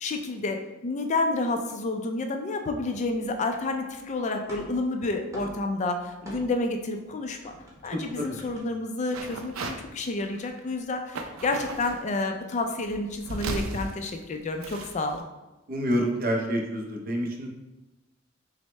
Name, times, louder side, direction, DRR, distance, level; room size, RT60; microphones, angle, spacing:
voice 1, 0.0-7.5 7.8-15.2, left 2 dB, 35° left, 5 dB, 0.4 m, -30 dB
sound 1, 3.0-4.0 4.2-6.8 7.1-8.6, equal, 15° right, 1.1 m, -45 dB
voice 2, 7.9-8.4 15.7-17.5, equal, 45° right, 2 dB, 0.6 m, -28 dB
sound 2, 9.1-9.8 10.2-10.7 11.1-12.0 12.8-15.2, right 3 dB, 85° right, 0.4 m, -35 dB
6.1 x 2.1 x 3.2 m, 1.0 s
head